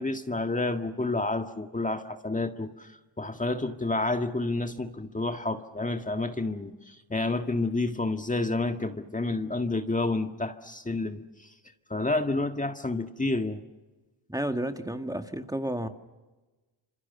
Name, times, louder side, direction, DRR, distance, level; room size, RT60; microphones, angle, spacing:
voice 1, 0.0-2.9 3.2-11.5 11.9-13.6, left 2 dB, 15° left, 6 dB, 1.7 m, -29 dB
voice 2, 14.3-15.9, right 1 dB, 5° right, 6 dB, 1.9 m, -31 dB
27.0 x 27.0 x 7.2 m, 1.2 s
cardioid pair, 70°, 48 cm